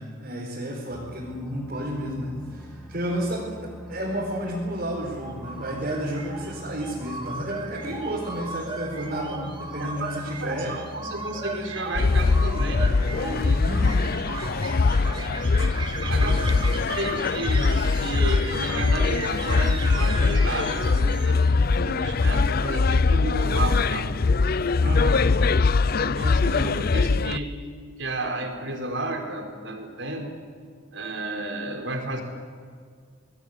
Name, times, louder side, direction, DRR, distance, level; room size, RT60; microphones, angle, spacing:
voice 1, 0.0-10.7 13.7-14.1 16.1-16.6 24.8-25.2, equal, 50° right, -4 dB, 4.7 m, -31 dB
sound 1, 0.9-19.2, right 1 dB, ahead, 2.2 m, -45 dB
sound 2, 5.2-21.7, right 3 dB, 25° right, 3.1 m, -37 dB
voice 2, 9.8-13.7 16.1-16.5 16.9-24.2 25.9-27.6 28.0-30.3 30.9-32.2, right 2 dB, 75° right, 4 dB, 4.4 m, -32 dB
sound 3, 11.9-27.4, left 4 dB, 50° left, 0.5 m, -22 dB
26.0 x 20.0 x 8.2 m, 2.1 s
head